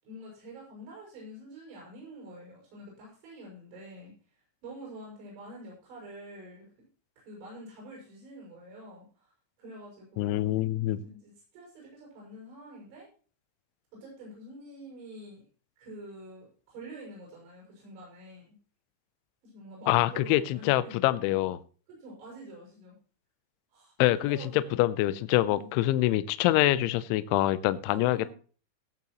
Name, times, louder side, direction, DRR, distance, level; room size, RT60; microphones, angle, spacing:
voice 1, 0.0-4.1 4.6-6.9 7.2-9.3 9.6-10.5 11.0-13.1 14.0-15.4 15.8-18.6 19.4-21.0 21.9-23.0 23.7-23.9 24.2-24.8 25.5-25.7 26.2-26.3 27.9-28.3, right 1 dB, 85° right, -3 dB, 9.1 m, -47 dB
voice 2, 10.2-11.0 19.9-21.6 24.0-28.3, left 15 dB, 80° left, 14 dB, 2.8 m, -25 dB
19.0 x 8.2 x 3.1 m, 0.40 s
omnidirectional pair, 6.0 m